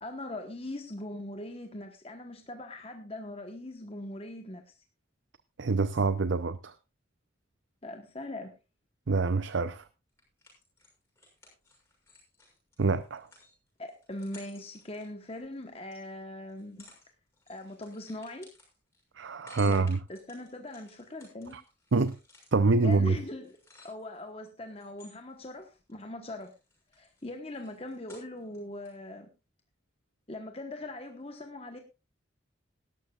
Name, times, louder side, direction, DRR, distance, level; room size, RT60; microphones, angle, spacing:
voice 1, 0.0-4.6 7.8-8.5 13.8-16.9 17.5-18.5 19.6-19.8 20.1-21.5 22.8-23.6 23.8-26.5 26.9-29.3 30.3-31.8, left 1 dB, 30° left, 1.1 m, -41 dB
voice 2, 5.6-6.7 9.1-9.8 12.8-13.3 19.2-20.0 21.9-22.1 22.5-23.2, right 3 dB, 70° right, 0.6 m, -26 dB
sound 1, 10.2-16.0 16.5-17.1 17.3-24.3 24.8-26.0 26.3-28.6 28.9-29.0, left 2 dB, 15° left, 6.2 m, -57 dB
18.5 x 12.0 x 2.4 m
head